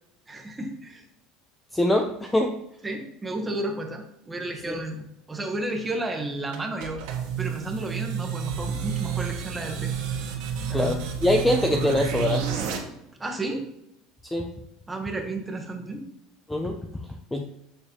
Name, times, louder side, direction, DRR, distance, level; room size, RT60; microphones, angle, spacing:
voice 1, 0.3-1.1 2.8-7.0 7.4-9.9 10.7-11.0 13.2-13.7 14.9-16.1, right 2 dB, 10° right, 3 dB, 1.0 m, -32 dB
voice 2, 1.7-2.6 4.7-4.8 10.7-12.5 14.3-14.5 16.5-16.8 17.3-17.4, left 1 dB, 5° left, 4 dB, 0.5 m, -23 dB
sound 1, 6.5-12.8, right 7 dB, 75° right, 1.5 m, -30 dB
6.7 x 6.7 x 2.9 m, 0.81 s
cardioid pair, 155°, 0 cm